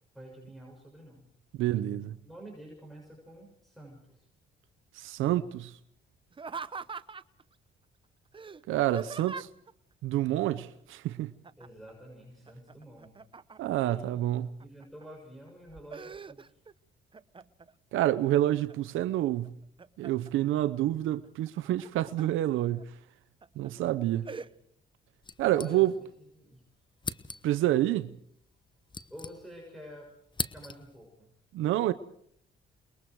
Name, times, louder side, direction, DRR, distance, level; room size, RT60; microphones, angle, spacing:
voice 1, 0.1-1.3 2.2-4.3 11.6-13.2 13.7-14.3 14.6-16.6 24.0-24.6 25.6-25.9 26.4-26.6 29.1-30.1 30.5-31.3, right 1 dB, ahead, 7.0 m, -49 dB
voice 2, 1.6-2.1 5.0-5.7 8.7-9.5 10.0-11.3 13.6-14.5 17.9-19.5 20.0-22.9 23.6-24.2 25.4-25.9 27.4-28.1 31.5-31.9, right 14 dB, 85° right, 0.8 m, -28 dB
Laughter, 6.3-7.4 8.3-9.7 11.4-11.9 12.2-13.8 14.4-15.0 15.5-16.7 17.1-17.7 18.2-19.0 19.4-20.3 21.5-22.3 22.8-22.9 23.4-23.7 24.3-24.5, right 5 dB, 25° right, 0.8 m, -43 dB
sound 1, 25.2-26.2 26.5-26.6 27.0-27.7 28.5-29.8 30.1-31.0, left 4 dB, 25° left, 1.1 m, -40 dB
29.0 x 21.5 x 4.7 m
cardioid pair, 90°, 20 cm